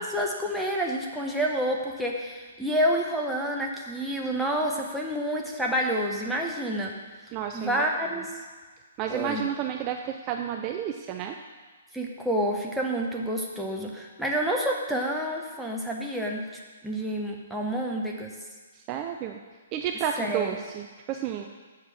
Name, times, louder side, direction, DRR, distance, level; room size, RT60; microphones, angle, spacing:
voice 1, 0.0-7.0 7.5-8.3 9.1-9.4 11.9-18.3 20.2-20.6, equal, ahead, -2 dB, 1.0 m, -28 dB
voice 2, 7.3-7.8 9.0-11.4 18.7-19.4 19.7-21.5, right 9 dB, 30° right, 4 dB, 0.5 m, -31 dB
7.4 x 4.6 x 6.9 m, 1.4 s
figure-of-eight pair, 125°, 0 cm